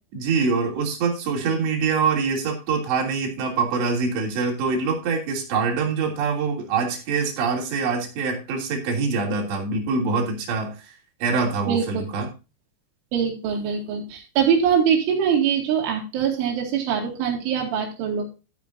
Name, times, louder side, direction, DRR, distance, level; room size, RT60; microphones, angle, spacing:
voice 1, 0.1-11.0 11.2-12.3, right 4 dB, 65° right, 0 dB, 5.1 m, -24 dB
voice 2, 11.7-12.0 13.1-18.3, right 7 dB, 90° right, 0 dB, 4.8 m, -23 dB
14.0 x 8.9 x 2.7 m, 0.30 s
omnidirectional pair, 5.4 m